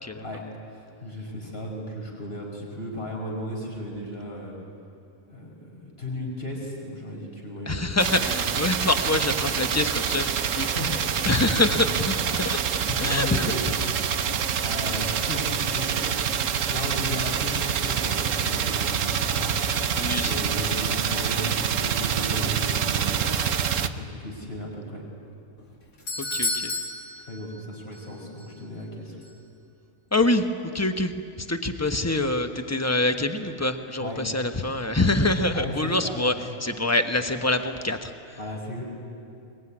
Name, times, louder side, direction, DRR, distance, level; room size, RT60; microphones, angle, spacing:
voice 1, 1.0-4.5 5.3-7.9 8.2-8.3 10.6-11.3 11.7-11.8 12.3-13.6 14.3-19.5 20.2-23.3 23.9-25.0 27.3-29.2 34.0-34.2 35.5-36.3 38.4-38.8, left 1 dB, 40° left, -1 dB, 5.7 m, -35 dB
voice 2, 7.7-10.7 11.3-12.6 12.9-13.5 14.8-15.0 20.0-20.3 26.2-26.7 30.1-38.4, left 2 dB, 10° left, 7 dB, 1.0 m, -25 dB
sound 1, 8.0-23.9, right 7 dB, 60° right, 1.2 m, -26 dB
Doorbell, 25.6-28.1 28.4-28.5 29.2-29.3, left 2 dB, 65° left, 3.2 m, -32 dB
22.5 x 21.5 x 9.9 m, 2.6 s
omnidirectional pair, 1.6 m